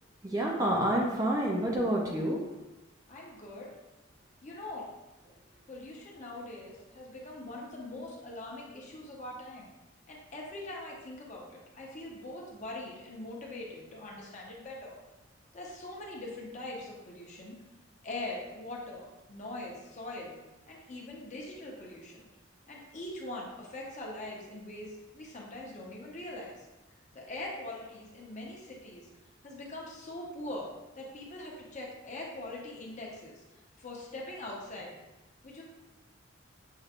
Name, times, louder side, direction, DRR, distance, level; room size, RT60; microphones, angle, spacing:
voice 1, 0.2-2.4, right 1 dB, 20° right, -2 dB, 0.5 m, -28 dB
voice 2, 3.1-3.7 4.4-4.9 5.7-9.7 10.1-15.0 15.5-17.6 18.0-20.4 20.7-22.3 22.7-26.7 27.1-29.1 29.4-30.7 30.9-33.4 33.8-35.0 35.4-35.6, left 1 dB, 35° left, -2 dB, 0.8 m, -42 dB
6.4 x 3.1 x 2.4 m, 1.0 s
head